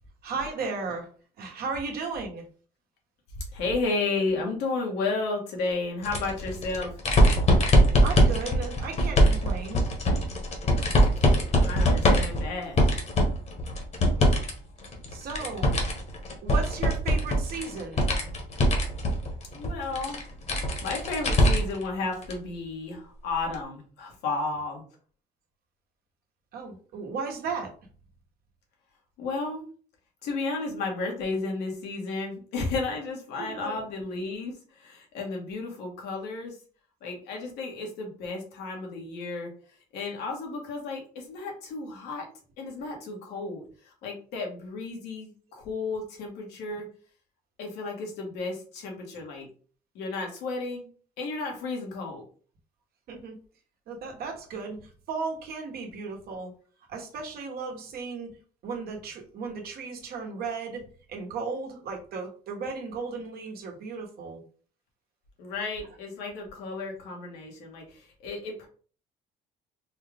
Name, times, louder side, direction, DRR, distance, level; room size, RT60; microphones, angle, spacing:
voice 1, 0.2-1.1 1.4-2.5 8.0-9.9 15.1-15.7 16.4-18.1 26.5-27.7 33.4-33.8 53.1-53.4 53.9-56.5 56.9-58.4 58.6-64.4, right 4 dB, 65° right, 2 dB, 1.2 m, -35 dB
voice 2, 3.5-6.9 11.6-12.8 19.5-20.2 20.8-24.8 29.2-29.7 30.2-36.6 37.0-39.5 39.9-42.3 42.6-46.9 47.6-49.5 49.9-50.9 51.2-52.2 65.4-68.7, left 3 dB, 90° left, 1 dB, 1.4 m, -33 dB
sound 1, 6.0-14.5 14.8-21.8 22.2-22.3 23.5-23.6, equal, 40° left, 1.1 m, -23 dB
4.3 x 2.3 x 3.4 m, 0.42 s
cardioid pair, 110°, 17 cm